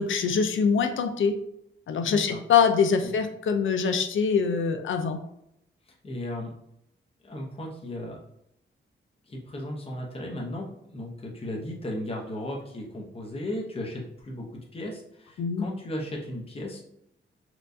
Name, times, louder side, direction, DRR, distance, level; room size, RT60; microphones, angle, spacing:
voice 1, 0.0-1.4 1.9-5.2 15.4-15.7, left 6 dB, 75° left, 7 dB, 0.4 m, -24 dB
voice 2, 2.0-2.4 3.0-3.2 5.9-6.5 7.2-8.2 9.3-16.8, left 1 dB, 30° left, -1 dB, 0.8 m, -36 dB
4.4 x 2.4 x 2.6 m, 0.79 s
wide cardioid pair, 135°, 21 cm